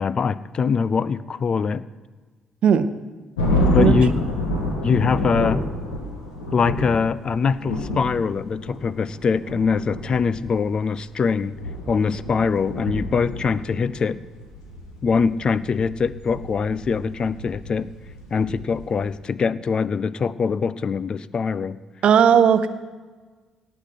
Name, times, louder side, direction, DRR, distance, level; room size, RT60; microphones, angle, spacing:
voice 1, 0.0-1.9 3.7-4.2 4.8-5.6 6.5-11.6 11.9-14.2 15.0-17.9 18.3-21.8, left 5 dB, 40° left, 18 dB, 0.5 m, -23 dB
voice 2, 2.6-3.0 3.7-3.9 22.0-22.7, right 8 dB, 55° right, 13 dB, 0.7 m, -16 dB
sound 1, 3.4-19.1, left 1 dB, 80° left, 1.8 m, -28 dB
18.0 x 6.4 x 5.8 m, 1.4 s
hypercardioid pair, 45°, 2 cm